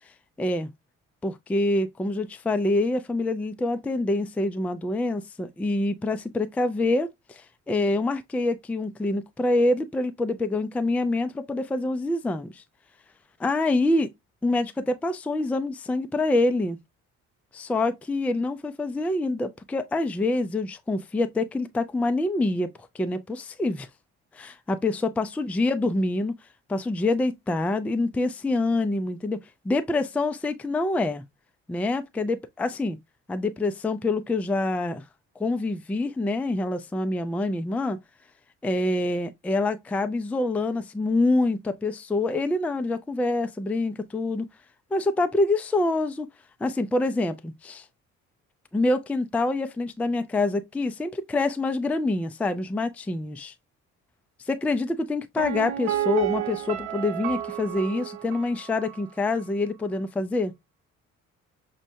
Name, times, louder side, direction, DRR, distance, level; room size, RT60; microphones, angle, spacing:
voice 1, 0.4-0.7 1.2-12.6 13.4-14.1 14.4-16.8 17.5-23.9 24.3-26.3 26.7-31.2 31.7-33.0 33.3-35.0 35.4-38.0 38.6-44.5 44.9-46.3 46.6-47.8 48.7-53.5 54.5-60.5, left 2 dB, 5° left, 0.4 m, -26 dB
Piano, 55.4-59.1 59.4-59.5, right 12 dB, 75° right, 0.7 m, -31 dB
6.0 x 2.1 x 2.6 m
figure-of-eight pair, 45°, 39 cm